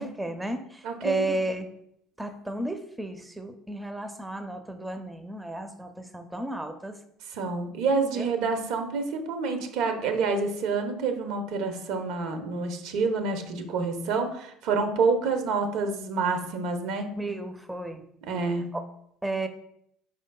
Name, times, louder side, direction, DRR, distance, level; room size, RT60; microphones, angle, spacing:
voice 1, 0.0-1.7 2.2-7.0 8.2-8.3 17.2-18.0 18.7-18.8 19.2-19.5, right 1 dB, 10° right, 8 dB, 0.5 m, -33 dB
voice 2, 0.8-1.2 7.3-17.1 18.3-18.7, right 4 dB, 65° right, 6 dB, 0.6 m, -28 dB
5.1 x 3.6 x 2.2 m, 0.73 s
hypercardioid pair, 65°, 0 cm